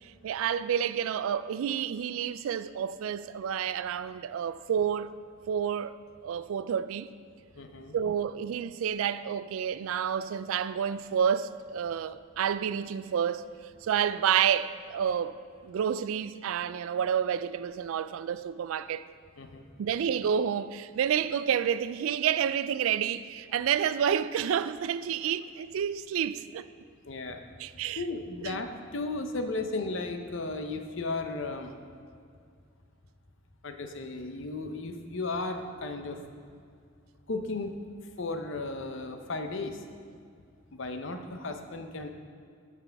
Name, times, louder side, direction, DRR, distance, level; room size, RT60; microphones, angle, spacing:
voice 1, 0.0-5.1 5.5-6.0 6.2-7.1 7.9-13.4 13.8-15.3 15.6-19.1 19.8-26.7 27.6-28.0 28.4-28.6, right 8 dB, 75° right, 0.3 m, -29 dB
voice 2, 7.5-7.9 19.4-19.7 27.1-27.4 28.0-31.8 33.6-36.2 37.3-37.8 38.2-39.8 40.7-42.1, left 3 dB, 60° left, 0.7 m, -35 dB
12.5 x 6.0 x 3.4 m
head